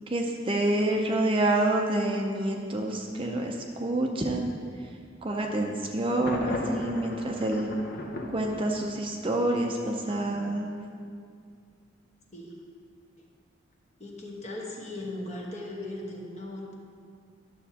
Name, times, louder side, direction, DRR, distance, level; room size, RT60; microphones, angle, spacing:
voice 1, 0.1-4.5 5.2-7.7 8.3-10.7, right 1 dB, 25° right, 1 dB, 0.6 m, -27 dB
Thunder, 6.3-9.2, left 1 dB, 50° left, 0.7 m, -36 dB
voice 2, 14.0-16.7, left 1 dB, 35° left, -2 dB, 1.1 m, -38 dB
11.5 x 7.1 x 2.8 m, 2.2 s
head